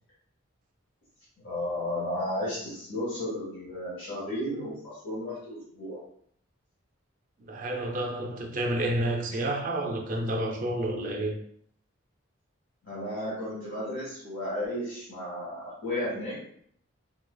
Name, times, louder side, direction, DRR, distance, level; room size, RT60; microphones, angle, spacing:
voice 1, 1.4-6.0 12.8-16.4, left 1 dB, 85° left, 1.4 m, -33 dB
voice 2, 7.4-11.3, right 1 dB, 40° right, 0.4 m, -30 dB
4.6 x 2.4 x 2.2 m
head